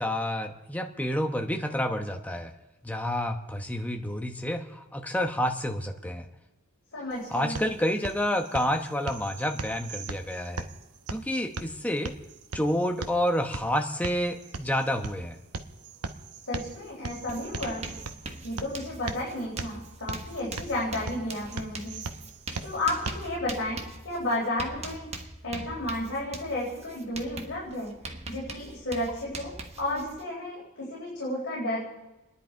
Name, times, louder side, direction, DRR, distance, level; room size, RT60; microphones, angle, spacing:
voice 1, 0.0-2.5 2.8-6.3 7.3-10.7 11.1-12.2 12.5-15.4, left 1 dB, 5° left, 5 dB, 1.0 m, -29 dB
voice 2, 6.9-7.6 16.4-18.0 18.4-22.0 22.6-25.1 25.4-27.9 28.3-31.8, left 1 dB, 55° left, -6 dB, 3.9 m, -32 dB
sound 1, 7.1-23.1, right 3 dB, 90° right, 1.0 m, -40 dB
Writing, 16.7-16.8 17.1-30.2, right 2 dB, 30° right, 1.2 m, -42 dB
28.0 x 10.5 x 4.6 m, 1.0 s
head